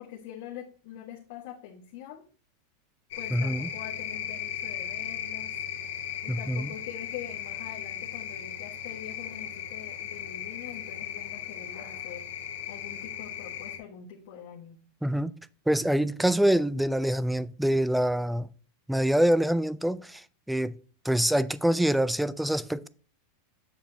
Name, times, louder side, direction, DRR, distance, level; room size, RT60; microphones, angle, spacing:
voice 1, 0.0-2.2 3.1-5.6 6.2-12.3 12.7-14.8, left 9 dB, 55° left, 1.4 m, -44 dB
sound 1, 3.1-13.8, left 9 dB, 75° left, 1.7 m, -37 dB
voice 2, 3.3-3.7 6.3-6.7 15.0-15.3 15.7-18.5 18.9-20.7 21.0-22.9, right 1 dB, ahead, 0.3 m, -25 dB
7.4 x 6.7 x 2.8 m
supercardioid pair, 160°, 0 cm